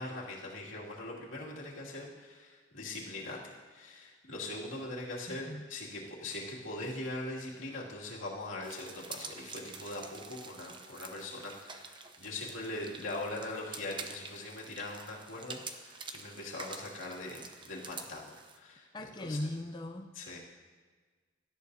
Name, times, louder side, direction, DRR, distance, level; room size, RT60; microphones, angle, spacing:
voice 1, 0.0-19.4 20.1-20.4, left 2 dB, 85° left, -4 dB, 2.5 m, -41 dB
voice 2, 5.3-5.6 18.9-20.1, left 1 dB, 25° left, 6 dB, 0.5 m, -38 dB
sound 1, 8.6-18.6, right 4 dB, 25° right, 0.7 m, -47 dB
17.0 x 12.5 x 2.8 m, 1.5 s
head